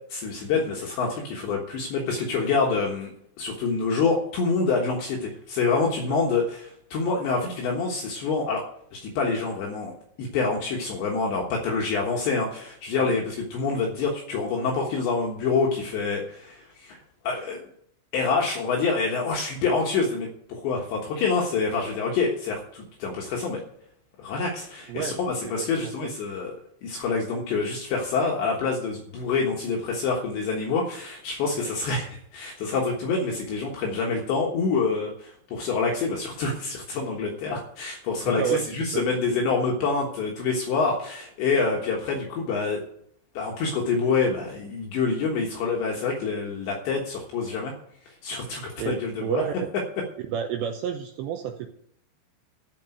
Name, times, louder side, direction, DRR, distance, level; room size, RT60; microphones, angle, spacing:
voice 1, 0.1-3.1 3.4-8.6 8.9-9.9 10.2-17.6 18.1-23.6 24.2-26.5 26.8-42.8 43.3-47.7 48.2-49.4, left 4 dB, 70° left, -1 dB, 3.4 m, -26 dB
voice 2, 24.9-25.2 25.4-26.1 31.5-31.7 38.3-38.7 38.9-39.0 48.5-49.7 50.3-51.7, right 9 dB, 90° right, 5 dB, 2.5 m, -30 dB
13.5 x 5.3 x 9.1 m, 0.69 s
omnidirectional pair, 5.9 m